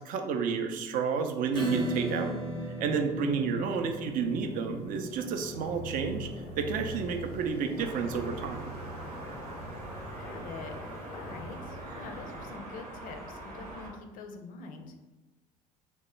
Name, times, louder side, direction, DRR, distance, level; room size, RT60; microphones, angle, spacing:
voice 1, 0.0-2.4 2.8-6.3 6.6-8.7, right 5 dB, 45° right, 6 dB, 0.5 m, -31 dB
Acoustic guitar / Strum, 1.5-8.7, right 1 dB, 25° right, 0.9 m, -37 dB
sound 1, 3.3-12.6, equal, 80° left, 0.7 m, -44 dB
sound 2, 7.8-13.9, right 2 dB, 85° right, 1.0 m, -43 dB
voice 2, 10.2-10.8 11.1-14.9, left 4 dB, 45° left, 4 dB, 0.5 m, -45 dB
3.5 x 2.1 x 3.1 m, 1.2 s
figure-of-eight pair, 60°, 20 cm